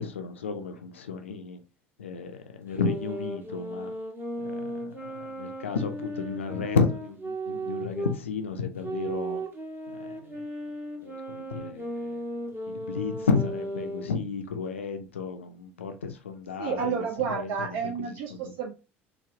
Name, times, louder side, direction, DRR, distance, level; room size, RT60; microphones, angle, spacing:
voice 1, 0.0-1.6 2.0-3.9 4.4-9.4 10.0-10.4 11.0-12.4 12.9-17.7 18.1-18.5, left 5 dB, 75° left, 0.4 m, -32 dB
sound 1, 2.7-8.2 8.8-14.2, right 1 dB, 30° right, 1.3 m, -36 dB
voice 2, 16.6-18.7, right 6 dB, 60° right, 0.5 m, -30 dB
3.9 x 2.1 x 2.7 m
figure-of-eight pair, 65°, 7 cm